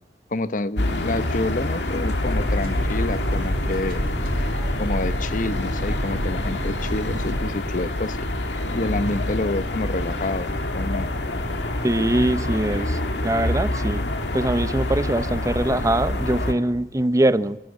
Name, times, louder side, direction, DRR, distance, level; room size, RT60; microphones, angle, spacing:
voice 1, 0.3-4.1 4.7-8.3 8.7-11.1, left 2 dB, 50° left, 0.9 m, -28 dB
sound 1, 0.8-16.5, left 1 dB, 75° left, 2.4 m, -26 dB
sound 2, 2.1-7.3, right 1 dB, 60° right, 5.1 m, -30 dB
voice 2, 11.8-13.0 13.2-14.1 14.3-17.6, right 1 dB, 20° right, 0.7 m, -22 dB
27.0 x 17.0 x 8.1 m
head